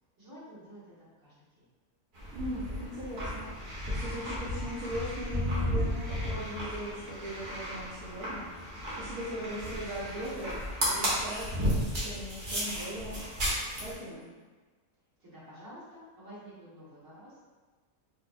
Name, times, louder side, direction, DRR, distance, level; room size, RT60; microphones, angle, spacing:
voice 1, 0.2-1.7 15.2-17.4, equal, 55° right, -13 dB, 1.8 m, -50 dB
sound 1, 2.1-13.9, equal, 40° right, 1.0 m, -34 dB
voice 2, 2.3-3.5 3.9-8.5 9.0-10.6 10.9-13.2 13.7-14.3, equal, 75° right, -11 dB, 1.3 m, -39 dB
4.6 x 2.5 x 2.5 m, 1.3 s
omnidirectional pair, 1.6 m